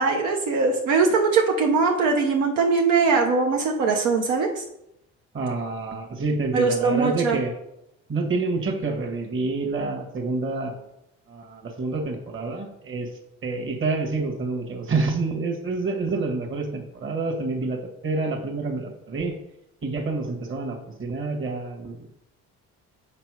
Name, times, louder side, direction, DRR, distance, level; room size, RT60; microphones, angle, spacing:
voice 1, 0.0-4.6 6.5-7.4, right 4 dB, 80° right, 2 dB, 0.8 m, -21 dB
voice 2, 5.3-7.5 8.1-10.7 11.3-13.1 13.4-19.3 19.8-22.1, right 3 dB, 40° right, 2 dB, 1.5 m, -28 dB
5.9 x 4.1 x 4.8 m, 0.84 s
supercardioid pair, 85°, 30 cm